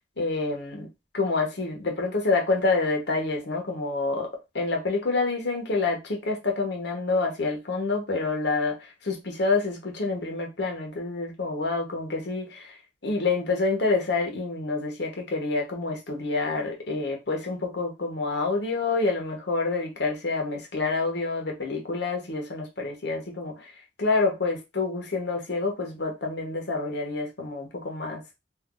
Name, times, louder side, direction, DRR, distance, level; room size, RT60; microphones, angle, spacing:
voice 1, 0.2-0.9 1.1-12.8 13.0-23.7 24.0-28.2, left 3 dB, 75° left, 0.9 m, -27 dB
2.5 x 2.4 x 3.7 m
head